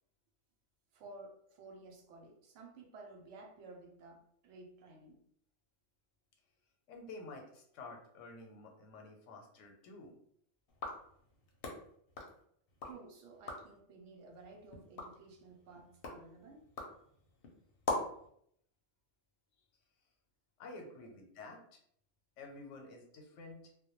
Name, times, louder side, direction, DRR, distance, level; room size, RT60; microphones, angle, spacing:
voice 1, 0.9-5.2 12.8-16.7, right 3 dB, 80° right, 2 dB, 0.9 m, -54 dB
voice 2, 6.9-10.1 20.6-21.8 22.4-23.6, left 3 dB, 90° left, 2 dB, 0.9 m, -50 dB
sound 1, 10.7-13.0 13.3-13.8 14.3-18.3, left 2 dB, 60° left, 0.7 m, -43 dB
2.2 x 2.1 x 2.9 m, 0.67 s
omnidirectional pair, 1.3 m